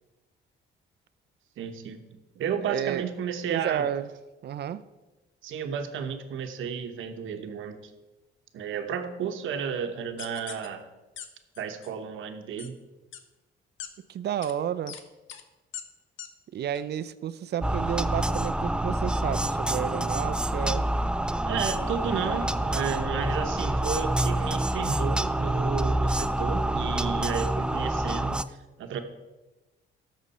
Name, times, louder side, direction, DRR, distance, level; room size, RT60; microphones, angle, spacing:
voice 1, 1.6-2.0 2.3-3.9 5.4-7.9 8.5-10.9 11.6-12.8 21.4-29.0, right 7 dB, 80° right, 7 dB, 1.0 m, -32 dB
voice 2, 2.7-3.0 3.5-4.1 4.4-4.8 14.1-15.0 16.5-20.8, right 10 dB, 55° right, 14 dB, 0.5 m, -31 dB
sound 1, 10.2-10.7 11.2-11.3 11.5-11.9 12.6-12.7 13.1-13.2 13.8-13.9 14.4-14.5 14.9-15.0 15.3-15.4 15.7-15.8 16.2-16.3 16.7-16.8, left 9 dB, 80° left, 0.9 m, -40 dB
sound 2, 17.6-28.4, right 1 dB, 5° right, 0.3 m, -27 dB
13.5 x 6.3 x 4.2 m, 1.1 s
cardioid pair, 90°, 20 cm